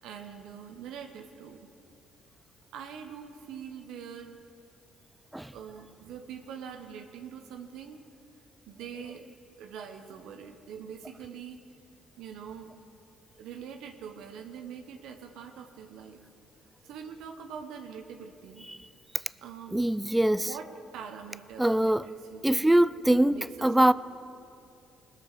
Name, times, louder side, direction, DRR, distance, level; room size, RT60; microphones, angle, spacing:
voice 1, 0.0-1.6 2.7-4.4 5.5-8.0 8.7-9.3 9.6-11.7 12.2-12.7 13.4-16.2 16.8-18.7 19.4-19.8 20.3-23.9, right 7 dB, 75° right, 0.8 m, -44 dB
voice 2, 19.7-20.5 21.6-22.1 22.4-23.9, right 1 dB, 10° right, 0.4 m, -23 dB
20.5 x 6.8 x 6.7 m
supercardioid pair, 60°, 0 cm